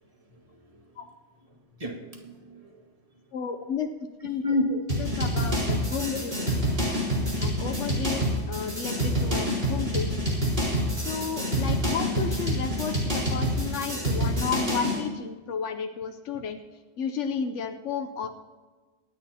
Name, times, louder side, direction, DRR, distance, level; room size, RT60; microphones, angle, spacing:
voice 1, 0.5-0.8 1.7-2.9 4.4-4.8 6.1-6.2 6.7-6.8, left 1 dB, 30° right, 0 dB, 2.0 m, -30 dB
voice 2, 3.3-3.9 4.2-4.4 5.0-6.3 7.4-10.3 10.7-16.6 17.0-18.3, left 6 dB, 90° left, 6 dB, 1.1 m, -33 dB
sound 1, 4.9-15.0, equal, 50° right, 4.7 m, -27 dB
24.0 x 9.9 x 2.8 m, 1.3 s
omnidirectional pair, 1.2 m